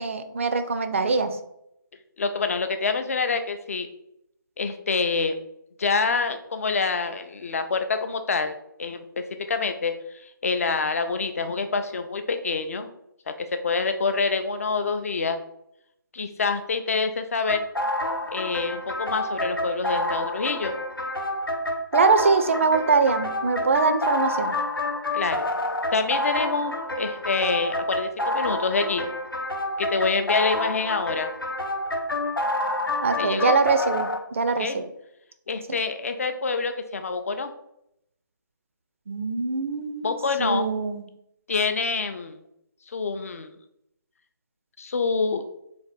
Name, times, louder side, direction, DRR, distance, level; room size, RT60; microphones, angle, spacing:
voice 1, 0.0-1.4 21.9-24.5 33.0-34.9 39.1-40.1 40.4-41.0, right 4 dB, 35° right, 10 dB, 0.4 m, -23 dB
voice 2, 2.2-3.9 4.6-5.4 5.8-12.9 13.4-15.4 16.1-17.6 18.3-20.7 25.1-25.5 25.9-29.1 29.8-31.3 33.2-33.6 34.6-34.8 35.5-37.5 40.0-40.7 41.5-42.4 42.9-43.5 44.8-45.4, left 4 dB, 40° left, 8 dB, 0.4 m, -26 dB
sound 1, 17.5-34.2, left 1 dB, 85° left, 0.8 m, -28 dB
3.7 x 3.4 x 4.0 m, 0.78 s
figure-of-eight pair, 150°, 11 cm